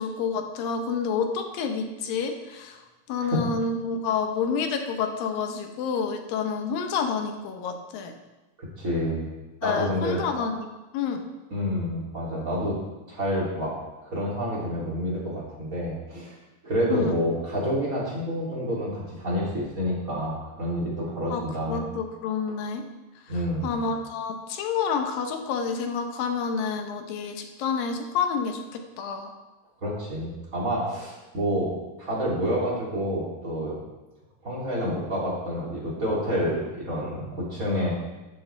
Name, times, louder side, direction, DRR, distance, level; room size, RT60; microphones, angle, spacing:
voice 1, 0.0-2.8 3.1-8.1 9.6-10.7 10.9-11.2 16.9-17.1 21.3-22.8 23.6-29.3, left 5 dB, 70° left, 5 dB, 2.5 m, -29 dB
voice 2, 8.6-9.3 9.6-10.2 11.5-12.8 13.1-13.7 14.0-16.3 16.6-21.9 23.3-23.8 29.8-31.7 32.0-33.8 34.4-37.9, equal, 25° right, -6 dB, 3.0 m, -28 dB
14.0 x 10.5 x 3.4 m, 1.1 s
omnidirectional pair, 4.6 m